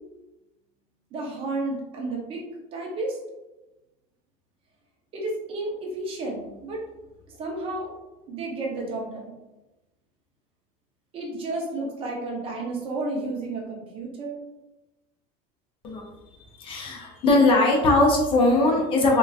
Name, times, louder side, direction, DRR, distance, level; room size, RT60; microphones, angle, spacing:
voice 1, 1.1-2.4 2.7-3.2 5.1-6.8 7.3-7.9 8.3-9.3 11.1-14.4, right 2 dB, 30° right, -1 dB, 0.6 m, -32 dB
voice 2, 16.5-19.2, left 2 dB, 30° left, -1 dB, 0.6 m, -20 dB
3.8 x 2.3 x 2.3 m, 1.0 s
cardioid pair, 160°, 18 cm